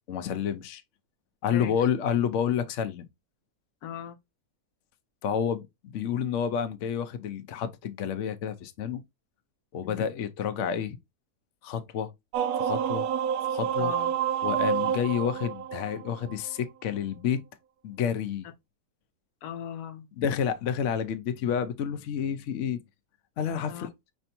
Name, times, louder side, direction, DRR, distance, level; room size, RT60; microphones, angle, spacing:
voice 1, 0.1-0.8 1.4-3.1 5.2-9.0 9.7-11.0 11.6-12.1 12.6-13.1 13.5-13.9 14.4-17.4 17.8-18.5 20.2-22.8 23.4-23.9, left 8 dB, 60° left, 0.9 m, -29 dB
voice 2, 3.8-4.2 9.8-10.1 13.8-14.1 19.4-20.1 23.7-23.9, left 9 dB, 90° left, 1.3 m, -39 dB
sound 1, 12.3-16.6, right 9 dB, 85° right, 1.1 m, -28 dB
5.6 x 3.4 x 2.6 m
omnidirectional pair, 1.6 m